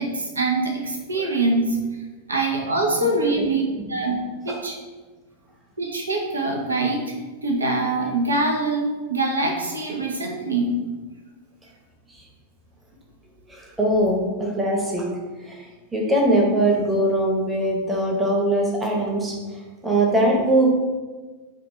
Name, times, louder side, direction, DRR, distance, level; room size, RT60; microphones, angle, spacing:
voice 1, 0.0-1.8 2.3-3.6 3.9-4.2 4.4-4.7 5.8-7.2 7.4-10.8, right 2 dB, 75° right, 0 dB, 0.6 m, -24 dB
voice 2, 3.0-3.6 4.5-4.6 12.1-12.2 13.5-15.0 15.4-15.7 15.9-19.4 19.8-20.7, right 1 dB, 10° right, -2 dB, 0.9 m, -22 dB
3.4 x 2.5 x 4.3 m, 1.3 s
figure-of-eight pair, 90°, 0 cm